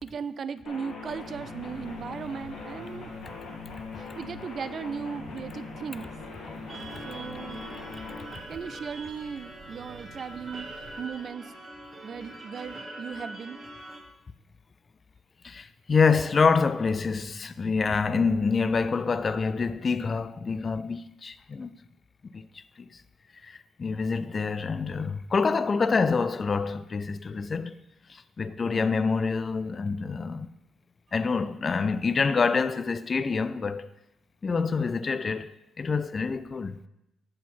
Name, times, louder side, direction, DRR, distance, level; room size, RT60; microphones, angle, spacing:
voice 1, 0.0-3.1 4.0-6.1 7.1-7.8 8.5-11.5 12.0-13.6 17.9-18.3 28.6-28.9, right 6 dB, 50° right, 0.3 m, -37 dB
sound 1, 0.7-8.3, left 4 dB, 70° left, 1.2 m, -41 dB
Church bell, 0.8-11.1, right 3 dB, 85° right, 0.7 m, -52 dB
sound 2, 6.7-14.0, right 2 dB, 30° right, 1.3 m, -43 dB
voice 2, 15.4-21.7 22.3-22.4 23.4-27.7 28.1-30.5 31.1-33.9 34.4-36.9, left 5 dB, 35° left, 0.3 m, -26 dB
7.4 x 4.1 x 5.7 m
cardioid pair, 90°, 0 cm